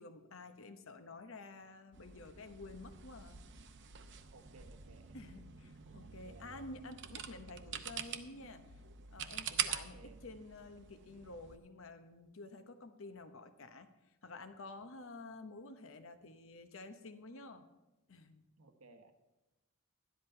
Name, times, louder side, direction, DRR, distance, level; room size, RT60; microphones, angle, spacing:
voice 1, 0.0-3.4 5.1-8.8 9.1-10.0 10.2-13.9 14.2-17.7 18.1-18.4, left 2 dB, 65° left, 9 dB, 0.9 m, -51 dB
sound 1, 1.9-11.6, right 9 dB, 60° right, 0.7 m, -45 dB
voice 2, 4.3-5.4 5.9-6.7 9.9-10.2 18.6-19.1, right 3 dB, 85° right, 6 dB, 1.1 m, -60 dB
12.5 x 10.5 x 4.5 m, 1.0 s
head